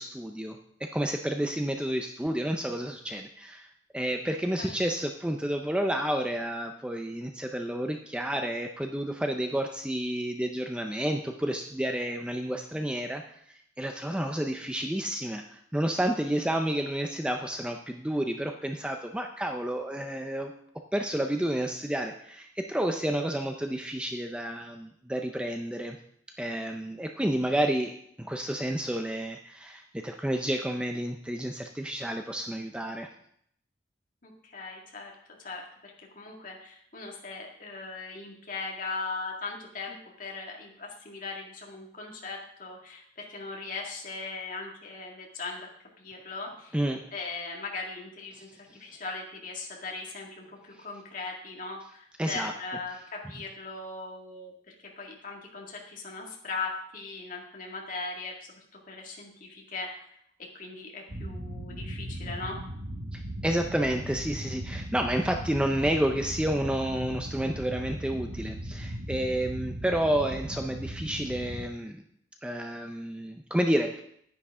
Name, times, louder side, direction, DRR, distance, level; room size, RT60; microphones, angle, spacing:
voice 1, 0.0-3.7 3.9-13.2 13.8-20.5 20.9-26.0 26.4-33.1 46.7-47.0 48.3-48.4 48.7-48.8 50.7-50.9 52.2-52.5 63.1-72.0 72.4-74.0, right 1 dB, 5° right, 4 dB, 0.4 m, -30 dB
voice 2, 34.2-35.1 35.4-45.7 46.0-46.8 47.1-58.3 58.9-60.1 60.5-62.6, left 3 dB, 45° left, -1 dB, 2.0 m, -39 dB
sound 1, 61.1-71.7, equal, 80° right, 1.7 m, -38 dB
10.0 x 9.9 x 3.6 m, 0.68 s
head